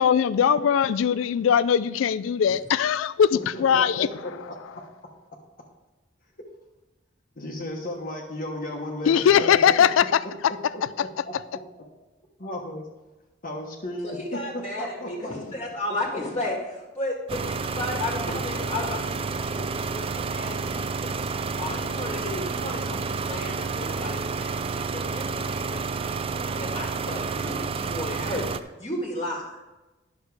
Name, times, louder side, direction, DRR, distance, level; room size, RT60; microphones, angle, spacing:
voice 1, 0.0-4.5 9.0-11.4, left 8 dB, 90° left, 16 dB, 0.3 m, -21 dB
voice 2, 3.5-4.3 7.4-9.6 10.7-11.1 12.4-12.9 13.4-15.3, left 1 dB, 45° left, -1 dB, 1.2 m, -34 dB
voice 3, 14.0-21.1 21.6-25.4 25.7-29.6, left 1 dB, 30° left, -2 dB, 1.5 m, -34 dB
sound 1, 17.3-28.6, right 4 dB, 30° right, 0.4 m, -30 dB
10.5 x 6.3 x 4.7 m, 1.1 s
head